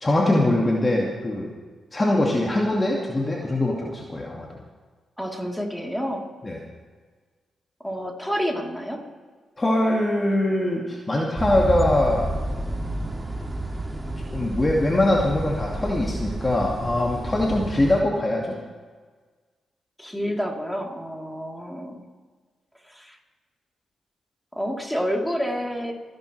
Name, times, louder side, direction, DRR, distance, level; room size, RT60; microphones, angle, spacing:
voice 1, 0.0-1.5 1.9-4.5 6.4-6.6 9.6-12.3 14.3-18.6, left 1 dB, 25° left, -2 dB, 2.3 m, -22 dB
voice 2, 5.2-6.2 7.8-9.0 20.0-22.1 22.8-23.2 24.5-25.9, equal, ahead, -1 dB, 3.5 m, -29 dB
sound 1, 11.4-18.0, right 1 dB, 25° right, 2.3 m, -30 dB
29.5 x 10.5 x 3.3 m, 1.5 s
supercardioid pair, 55°, 0 cm